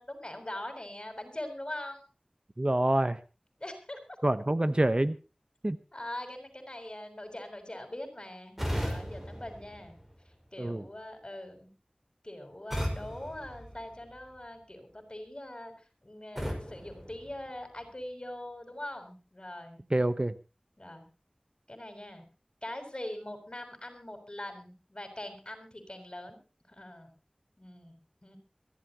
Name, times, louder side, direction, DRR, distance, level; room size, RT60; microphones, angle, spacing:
voice 1, 0.0-2.0 3.6-4.2 5.9-10.0 10.5-11.7 12.2-15.7 16.0-19.8 20.8-21.1 21.7-22.3 22.6-26.4 26.7-27.1 27.6-28.4, left 1 dB, 35° left, 7 dB, 6.5 m, -42 dB
voice 2, 2.6-3.2 4.2-5.2 5.6-5.8 10.6-10.8 19.9-20.3, right 1 dB, 40° right, 12 dB, 1.0 m, -26 dB
sound 1, 8.6-10.5 12.7-14.4 16.3-18.0, equal, 10° right, 5.3 m, -37 dB
23.0 x 15.5 x 3.0 m, 0.32 s
wide cardioid pair, 50°, 3 cm